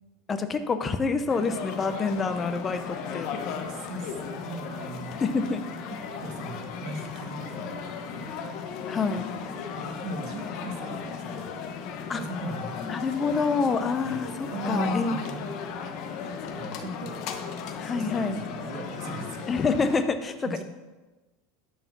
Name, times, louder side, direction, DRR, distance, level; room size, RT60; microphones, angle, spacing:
voice 1, 0.3-3.3 5.2-5.6 8.9-9.3 12.1-12.2 12.8-15.2 17.8-18.4 19.5-20.6, left 4 dB, 20° left, 9 dB, 0.7 m, -27 dB
sound 1, 1.3-20.0, left 6 dB, 45° left, 1.0 m, -36 dB
voice 2, 3.6-5.2 5.9-8.4 9.1-9.2 9.8-11.5 12.2-13.0 14.0-14.2 14.5-15.4 16.5-17.2 17.9-19.5 20.4-20.6, right 2 dB, 45° right, 5 dB, 1.2 m, -38 dB
11.0 x 4.8 x 6.1 m, 1.2 s
supercardioid pair, 155°, 0 cm